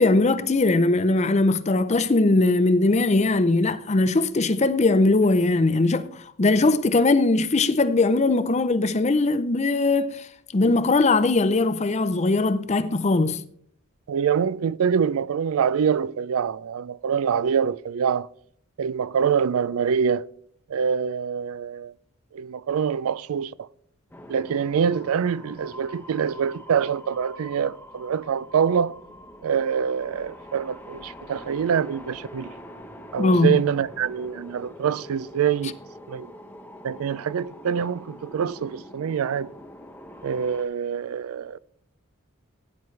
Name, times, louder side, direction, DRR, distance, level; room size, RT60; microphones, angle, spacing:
voice 1, 0.0-10.3 10.5-13.4 33.2-33.5, left 2 dB, 30° left, 0.5 m, -20 dB
voice 2, 14.1-18.3 18.8-20.3 20.7-21.9 22.3-23.7 24.3-28.9 29.4-32.5 33.1-35.8 36.1-36.3 36.8-39.5 40.2-41.6, right 7 dB, 80° right, 0.4 m, -25 dB
sound 1, 24.1-40.6, equal, 10° left, 0.8 m, -44 dB
17.0 x 9.5 x 3.2 m
head